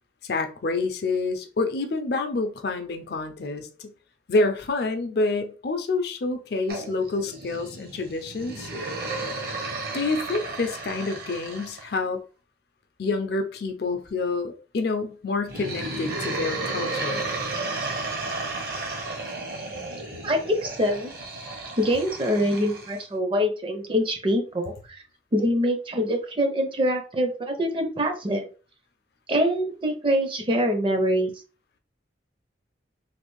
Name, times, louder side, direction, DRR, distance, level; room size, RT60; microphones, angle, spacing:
voice 1, 0.2-3.9 4.3-8.7 9.9-12.2 13.0-17.3, left 3 dB, 60° left, 0.5 m, -28 dB
sound 1, 6.7-11.9 15.4-23.0, right 2 dB, 55° right, 0.8 m, -33 dB
voice 2, 20.2-21.1 21.8-25.0 25.3-28.5 29.3-31.3, equal, 30° right, 0.5 m, -24 dB
3.2 x 2.4 x 3.1 m
head